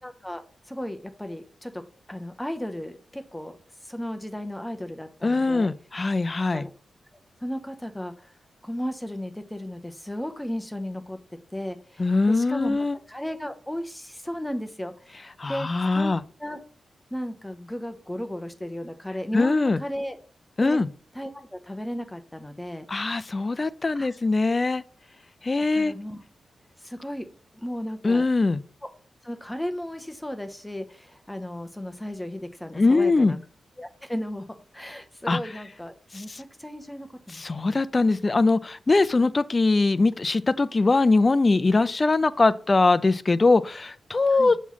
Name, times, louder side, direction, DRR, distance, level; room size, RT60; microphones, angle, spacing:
voice 1, 0.0-0.4 0.7-3.5 3.8-5.7 6.5-6.7 7.4-8.3 8.6-11.2 11.5-15.7 15.9-16.1 16.4-16.6 17.1-20.2 20.6-20.8 21.1-22.9 23.9-24.1 25.7-26.2 26.8-27.3 27.5-28.3 29.2-33.4 33.8-34.5 34.7-37.8 44.3-44.5, equal, 5° left, 0.7 m, -35 dB
voice 2, 5.2-6.7 12.0-13.0 15.4-16.2 19.3-19.8 20.6-20.9 22.9-24.8 25.4-25.9 28.0-28.6 32.8-33.4 35.3-35.4 36.1-36.4 37.3-44.6, left 3 dB, 30° left, 0.4 m, -22 dB
7.1 x 3.1 x 5.5 m
wide cardioid pair, 95°, 0 cm